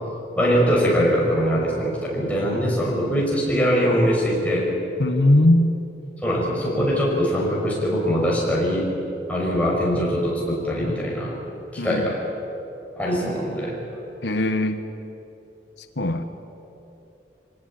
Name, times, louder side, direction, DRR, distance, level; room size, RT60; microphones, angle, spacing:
voice 1, 0.4-4.7 6.2-8.9 9.3-11.3 11.7-12.2 13.0-13.8, equal, 10° left, -4 dB, 5.8 m, -22 dB
voice 2, 5.0-5.7 11.8-12.0 14.2-14.8 16.0-16.2, left 1 dB, 85° left, 8 dB, 1.1 m, -19 dB
23.5 x 18.5 x 8.9 m, 2.9 s
head